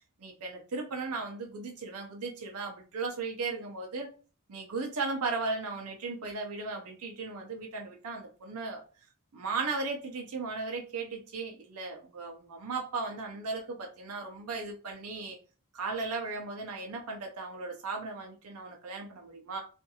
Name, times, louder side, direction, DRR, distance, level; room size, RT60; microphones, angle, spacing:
voice 1, 0.2-4.1 4.5-8.8 9.3-15.4 15.7-19.6, right 3 dB, 75° right, 1 dB, 0.5 m, -36 dB
2.5 x 2.3 x 2.7 m, 0.37 s
head